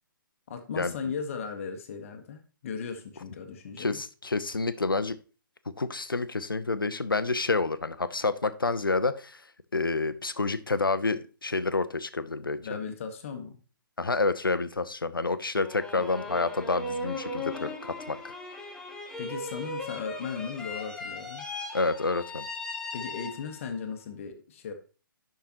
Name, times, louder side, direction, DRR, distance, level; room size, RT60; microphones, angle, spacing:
voice 1, 0.5-4.0 12.6-13.6 15.9-16.1 19.2-21.4 22.9-24.7, left 6 dB, 40° left, 6 dB, 1.2 m, -37 dB
voice 2, 3.8-5.2 5.8-9.4 9.7-12.6 14.0-18.3 21.7-22.4, left 3 dB, 80° left, 13 dB, 0.7 m, -28 dB
sound 1, 15.6-23.8, left 2 dB, 5° left, 0.8 m, -38 dB
10.5 x 5.9 x 2.9 m, 0.36 s
figure-of-eight pair, 130°, 11 cm